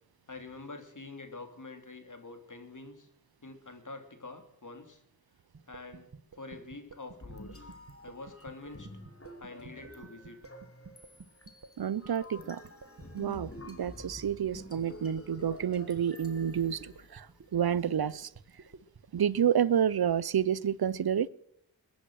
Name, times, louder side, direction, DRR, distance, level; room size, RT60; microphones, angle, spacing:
voice 1, 0.3-3.1 3.4-5.0 5.7-6.0 6.4-7.7 8.0-8.9 9.4-10.4 16.7-16.9, left 3 dB, 50° left, 3.1 m, -46 dB
sound 1, 5.5-19.3, right 5 dB, 55° right, 1.4 m, -51 dB
sound 2, 7.2-17.5, left 1 dB, 35° left, 2.7 m, -49 dB
voice 2, 11.8-12.6 13.1-17.3 17.5-18.3 19.1-21.3, right 9 dB, 70° right, 0.7 m, -29 dB
21.5 x 10.5 x 6.3 m
wide cardioid pair, 55°, 38 cm